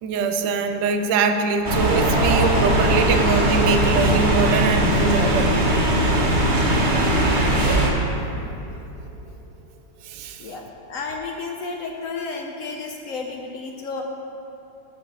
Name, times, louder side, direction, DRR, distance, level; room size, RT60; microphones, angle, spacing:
voice 1, 0.0-5.6 10.0-10.4, right 4 dB, 80° right, 6 dB, 1.3 m, -23 dB
sound 1, 1.5-7.8, left 1 dB, 5° right, 0.5 m, -33 dB
sound 2, 1.6-7.9, right 1 dB, 35° right, 0.8 m, -20 dB
sound 3, 2.0-10.3, right 1 dB, 90° left, 1.8 m, -36 dB
voice 2, 10.4-14.0, left 4 dB, 65° left, 2 dB, 0.8 m, -32 dB
6.8 x 6.4 x 6.7 m, 2.8 s
omnidirectional pair, 2.0 m